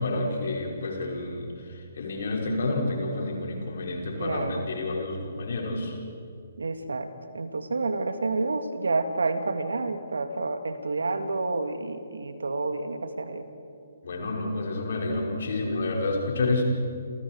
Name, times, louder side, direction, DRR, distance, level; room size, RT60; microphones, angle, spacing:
voice 1, 0.0-6.0 14.0-16.6, left 2 dB, 55° left, -1 dB, 5.6 m, -29 dB
voice 2, 4.2-4.7 6.6-7.1 7.3-13.5, right 3 dB, 70° right, 9 dB, 2.0 m, -29 dB
30.0 x 27.0 x 4.7 m, 2.5 s
figure-of-eight pair, 130°, 0 cm